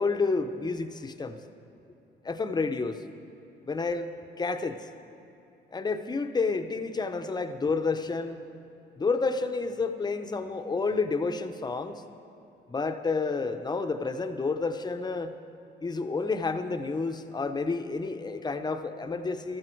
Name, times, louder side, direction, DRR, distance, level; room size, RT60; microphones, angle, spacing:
voice 1, 0.0-1.4 2.2-3.0 3.7-4.1 4.4-4.8 5.7-8.4 9.0-12.0 12.7-15.3 15.8-19.6, left 4 dB, 20° left, 8 dB, 0.7 m, -30 dB
14.0 x 13.0 x 4.5 m, 2.8 s
cardioid pair, 90°, 20 cm